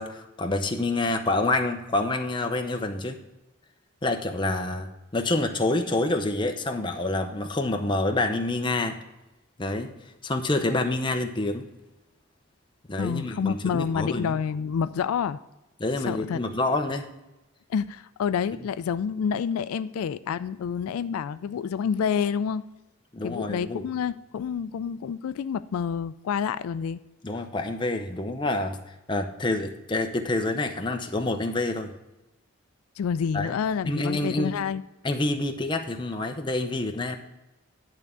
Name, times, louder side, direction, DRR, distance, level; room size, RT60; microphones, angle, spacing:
voice 1, 0.0-3.2 4.0-9.0 9.6-9.9 10.2-11.6 12.9-14.3 15.8-17.1 23.1-23.8 27.2-28.8 29.1-31.9 33.3-33.6 33.8-34.6 35.0-37.2, left 2 dB, 20° left, 5 dB, 0.7 m, -27 dB
voice 2, 13.0-15.4 16.1-16.4 17.7-22.6 23.2-27.0 33.0-34.8, left 7 dB, 85° left, 14 dB, 0.3 m, -28 dB
10.5 x 3.6 x 6.7 m, 0.99 s
head